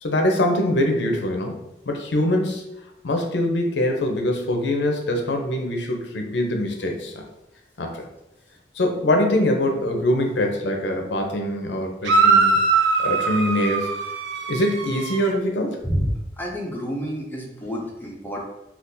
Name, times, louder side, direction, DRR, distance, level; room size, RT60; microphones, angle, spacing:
voice 1, 0.0-1.6 1.9-2.6 3.0-7.1 7.8-8.0 8.8-12.6 13.0-13.9 14.5-15.8, left 1 dB, 75° left, 3 dB, 0.6 m, -23 dB
sound 1, 12.0-15.3, right 4 dB, 75° right, 0.4 m, -21 dB
voice 2, 15.8-18.4, equal, 10° left, -2 dB, 0.6 m, -28 dB
3.6 x 2.4 x 2.6 m, 0.90 s
head